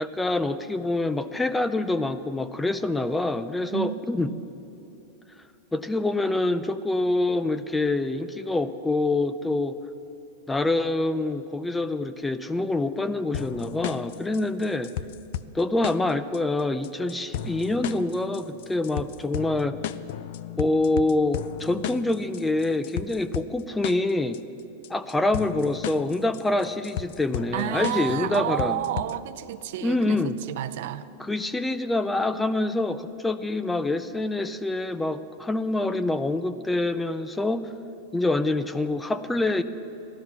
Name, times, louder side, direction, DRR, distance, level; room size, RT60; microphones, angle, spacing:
voice 1, 0.0-4.3 5.7-9.8 10.5-14.9 15.5-19.8 20.6-24.4 24.9-28.8 29.8-30.4 31.2-37.7 38.1-39.6, left 2 dB, 5° left, 13 dB, 0.4 m, -26 dB
sound 1, 13.3-29.3, left 11 dB, 60° left, 0.5 m, -35 dB
voice 2, 27.5-30.2 30.5-31.1, right 13 dB, 65° right, 12 dB, 0.6 m, -30 dB
15.5 x 12.0 x 5.9 m, 2.8 s
supercardioid pair, 145°, 0 cm